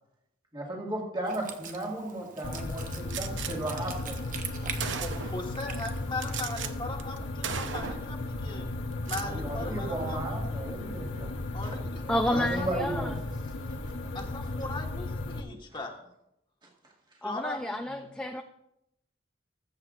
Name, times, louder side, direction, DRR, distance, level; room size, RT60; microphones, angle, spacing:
voice 1, 0.5-4.3 9.2-11.3 11.6-11.8 12.3-13.2 13.8-13.9 15.4-15.5 17.9-18.0, right 2 dB, 25° right, -2 dB, 1.9 m, -35 dB
Wind instrument woodwind instrument, 1.2-6.7, right 6 dB, 45° right, 0.9 m, -43 dB
sound 1, 2.4-15.4, left 2 dB, 85° left, 0.8 m, -35 dB
Gunshot gunfire, 3.1-3.5 4.3-4.4 4.8-5.5 6.2-6.7 7.0-7.2 7.4-8.1 8.9-9.3, right 7 dB, 85° right, 0.7 m, -36 dB
voice 2, 5.0-8.7 9.1-10.3 11.5-12.7 14.1-15.9 17.2-17.9, left 2 dB, 25° left, 2 dB, 1.4 m, -38 dB
voice 3, 12.1-13.1 17.2-18.4, left 1 dB, 5° left, 5 dB, 0.4 m, -30 dB
21.5 x 7.8 x 2.5 m, 0.82 s
head